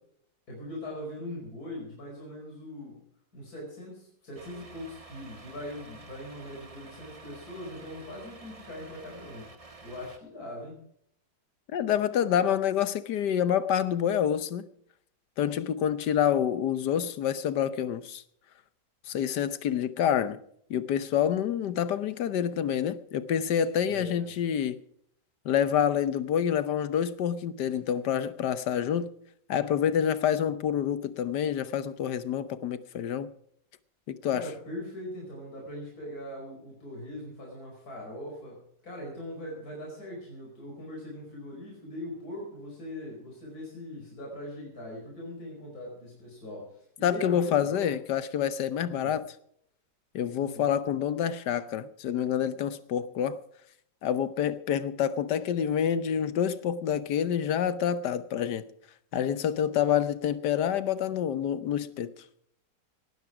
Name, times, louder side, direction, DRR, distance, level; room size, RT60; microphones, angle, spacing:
voice 1, 0.5-3.0 3.3-9.5 9.8-10.8 23.8-24.3 34.3-47.9 48.9-49.2 50.4-50.6, left 1 dB, 60° left, 5.6 m, -41 dB
Truck, 4.4-10.2, right 3 dB, 20° right, 1.4 m, -50 dB
voice 2, 11.7-14.7 15.4-18.2 19.1-20.4 20.7-24.8 25.4-29.1 29.5-33.3 34.1-34.4 47.0-49.2 50.1-53.4 54.0-58.7 59.1-62.1, left 9 dB, 75° left, 1.5 m, -27 dB
18.5 x 12.5 x 4.9 m
omnidirectional pair, 1.8 m